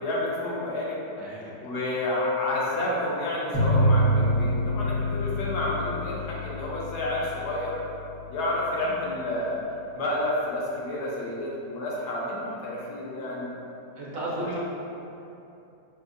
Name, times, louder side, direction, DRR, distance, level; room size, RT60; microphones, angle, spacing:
voice 1, 0.0-1.0 1.4-7.8 8.3-9.6 9.9-13.5 14.4-14.6, left 1 dB, 75° left, -5 dB, 1.2 m, -30 dB
voice 2, 1.1-1.5 13.9-14.6, right 1 dB, 60° right, -6 dB, 0.9 m, -34 dB
sound 1, 3.5-8.7, equal, 55° left, 0.3 m, -26 dB
5.1 x 2.0 x 2.5 m, 2.8 s
omnidirectional pair, 1.9 m